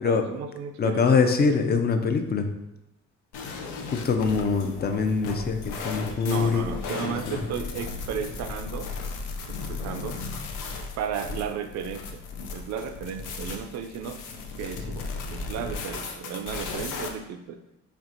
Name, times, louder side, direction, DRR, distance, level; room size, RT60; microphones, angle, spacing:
voice 1, 0.0-1.3 6.2-8.9 9.5-10.2 11.0-12.2 12.5-14.2 14.6-17.6, right 7 dB, 65° right, 8 dB, 0.4 m, -34 dB
voice 2, 0.8-2.5 3.9-6.6 7.3-7.5, left 5 dB, 35° left, 7 dB, 0.5 m, -24 dB
sound 1, 3.3-17.1, left 4 dB, 90° left, 0.6 m, -35 dB
4.4 x 3.3 x 2.5 m, 0.93 s
cardioid pair, 90°, 30 cm